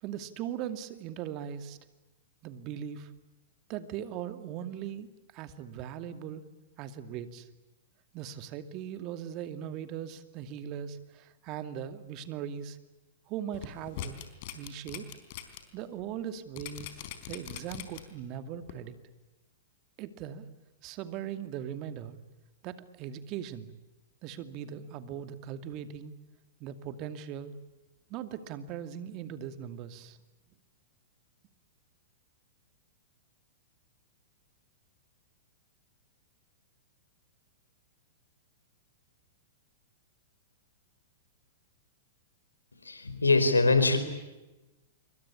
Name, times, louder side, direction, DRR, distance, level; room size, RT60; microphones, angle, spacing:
voice 1, 0.0-1.8 2.4-3.1 3.7-5.1 5.3-6.5 6.8-7.5 8.1-12.8 13.3-14.2 14.5-15.1 15.7-17.0 17.3-18.9 20.0-20.4 20.8-22.2 22.6-23.7 24.2-26.1 26.6-27.5 28.1-30.2, right 9 dB, 40° right, 10 dB, 2.4 m, -39 dB
sound 1, 13.5-15.6 16.0-16.1 16.6-18.2 18.7-18.8, left 11 dB, 50° left, 4.2 m, -41 dB
voice 2, 42.8-44.0, left 3 dB, 90° left, 10 dB, 4.7 m, -23 dB
27.0 x 24.5 x 8.5 m, 1.1 s
figure-of-eight pair, 105°, 0 cm